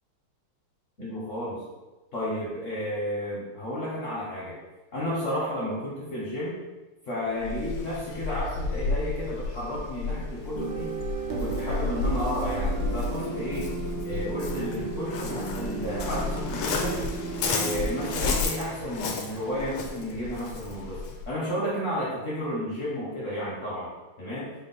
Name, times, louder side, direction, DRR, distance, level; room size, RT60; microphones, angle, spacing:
voice 1, 1.0-1.6 2.1-4.6 4.9-6.6 7.1-10.9 11.3-13.7 14.1-17.1 17.4-23.9 24.2-24.5, equal, 60° left, -7 dB, 0.8 m, -32 dB
Waves surf, 7.4-21.3, left 3 dB, 75° left, 1.3 m, -32 dB
sound 1, 10.6-18.4, right 4 dB, 75° right, 1.4 m, -34 dB
4.6 x 2.1 x 3.9 m, 1.1 s
omnidirectional pair, 2.3 m